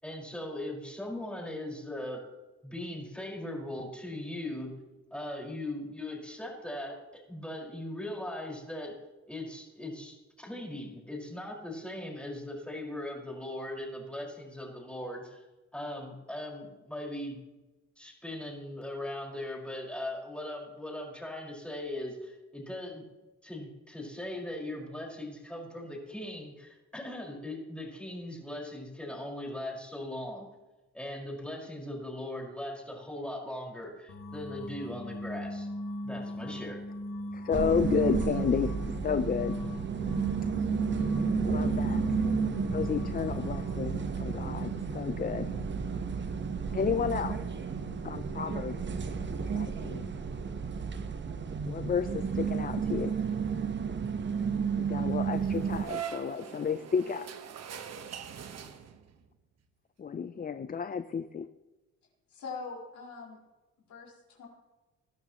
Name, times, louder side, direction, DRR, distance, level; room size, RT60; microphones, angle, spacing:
voice 1, 0.0-2.2 2.6-4.7 5.1-8.9 9.3-15.4 15.7-17.4 18.0-23.0 23.4-30.5 30.9-35.7 36.0-36.8, left 1 dB, 5° left, -1 dB, 5.2 m, -39 dB
sound 1, 34.1-43.8, left 1 dB, 45° left, 2.6 m, -38 dB
voice 2, 37.3-38.7 39.0-39.6 41.4-42.2 42.7-45.5 46.7-47.4 48.0-48.8 49.5-50.1 51.6-53.2 54.8-57.3 60.0-61.5, left 6 dB, 30° left, 12 dB, 0.6 m, -31 dB
sound 2, 37.5-55.9, right 6 dB, 40° right, 1.2 m, -32 dB
sound 3, 55.3-59.2, right 8 dB, 60° right, 1.4 m, -42 dB
voice 3, 62.3-63.4 63.9-64.5, left 4 dB, 70° left, -2 dB, 4.7 m, -42 dB
19.5 x 12.0 x 3.1 m, 1.1 s
cardioid pair, 90°, 30 cm